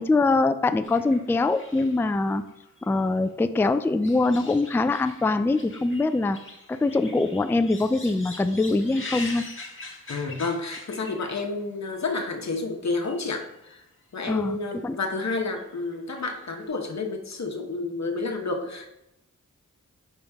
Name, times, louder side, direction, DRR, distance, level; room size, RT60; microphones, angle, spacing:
voice 1, 0.0-2.4 2.9-6.4 6.7-9.5 14.3-14.6 14.8-15.0, left 3 dB, 5° left, 10 dB, 0.3 m, -23 dB
sound 1, 0.8-3.3 3.6-11.6 11.9-12.3 12.9-13.4 13.7-13.8 14.7-15.1 15.3-16.6, left 3 dB, 40° left, 1.4 m, -43 dB
voice 2, 10.1-13.8 14.1-19.0, left 3 dB, 55° left, 3 dB, 1.1 m, -30 dB
5.5 x 5.1 x 3.5 m, 0.86 s
cardioid pair, 45°, 32 cm